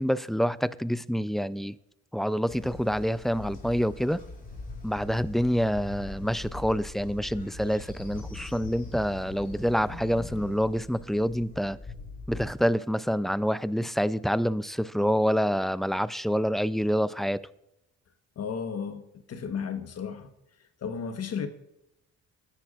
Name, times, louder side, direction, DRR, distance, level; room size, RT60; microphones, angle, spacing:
voice 1, 0.0-1.8 2.1-4.2 4.8-11.8 12.3-17.4, equal, ahead, 0.4 m, -27 dB
Train, 2.5-12.5, left 2 dB, 30° left, 4.9 m, -42 dB
voice 2, 18.4-20.3 20.8-21.5, left 6 dB, 55° left, 1.2 m, -34 dB
20.0 x 10.5 x 2.5 m
cardioid pair, 90°, 30 cm